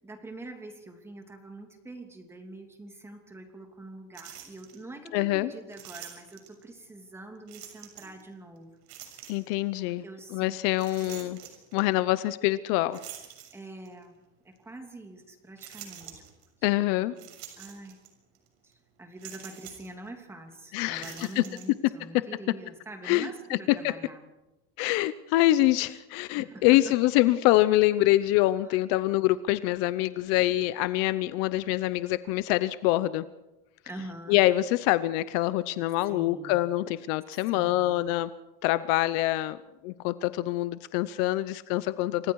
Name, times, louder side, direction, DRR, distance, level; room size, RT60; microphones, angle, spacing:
voice 1, 0.0-9.3 9.7-10.6 11.0-11.3 13.5-14.2 14.4-16.2 16.7-18.0 18.6-24.2 26.4-26.8 28.6-28.8 33.8-34.4 36.0-36.6 37.3-38.0, right 2 dB, 10° right, 4 dB, 3.0 m, -45 dB
sound 1, 4.1-4.8 5.7-6.6 7.5-8.2 8.9-9.6 10.7-11.8 12.9-14.0 14.6-14.7 15.6-16.5 17.2-18.1 18.4-18.5 19.2-19.9 20.9-21.7, right 11 dB, 80° right, 6.8 m, -46 dB
voice 2, 5.1-5.5 9.3-10.0 10.3-11.4 11.7-13.0 16.6-17.1 20.7-21.4 23.0-23.6 23.8-23.9 24.8-33.3 34.3-38.3 38.6-39.6 39.8-42.3, left 16 dB, 55° left, 14 dB, 0.8 m, -25 dB
29.0 x 25.0 x 4.8 m, 1.0 s
cardioid pair, 170°, 31 cm